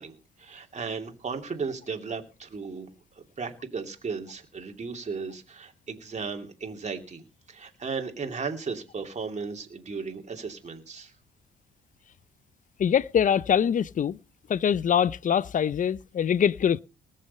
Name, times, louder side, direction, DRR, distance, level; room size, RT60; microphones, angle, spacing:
voice 1, 0.0-11.1, right 5 dB, 35° right, 2.8 m, -36 dB
voice 2, 12.8-14.2 14.5-16.8, left 8 dB, 40° left, 0.5 m, -23 dB
19.5 x 6.6 x 5.5 m
cardioid pair, 90°, 20 cm